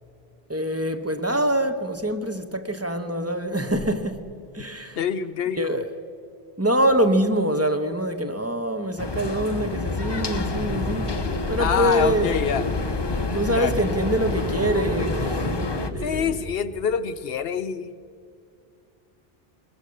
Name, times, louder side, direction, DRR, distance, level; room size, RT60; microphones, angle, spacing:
voice 1, 0.5-4.2 4.5-5.0 5.6-5.9 6.6-11.1 11.5-12.3 13.3-15.6 15.9-16.0, right 1 dB, 15° right, 7 dB, 1.1 m, -24 dB
voice 2, 5.0-5.9 11.6-12.7 13.5-14.0 16.0-18.0, left 7 dB, 70° left, 13 dB, 0.9 m, -26 dB
sound 1, 9.0-15.9, left 3 dB, 25° left, 0.7 m, -28 dB
sound 2, 10.3-16.2, equal, 70° right, 4.8 m, -32 dB
21.0 x 20.5 x 6.5 m, 2.5 s
omnidirectional pair, 1.0 m